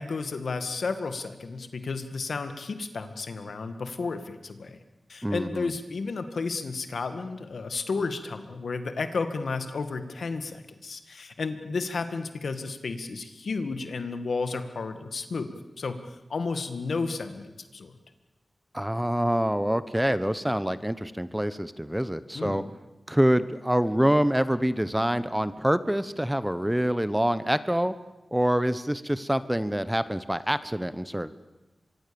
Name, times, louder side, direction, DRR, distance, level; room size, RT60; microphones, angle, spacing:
voice 1, 0.0-4.8 5.1-16.0 16.3-17.9 22.3-22.6, left 4 dB, 80° left, 9 dB, 2.0 m, -32 dB
voice 2, 5.2-5.7 18.7-22.6 23.1-28.0 28.3-31.3, equal, 10° right, 14 dB, 1.1 m, -26 dB
24.5 x 23.5 x 7.1 m, 1.0 s
wide cardioid pair, 65°, 0 cm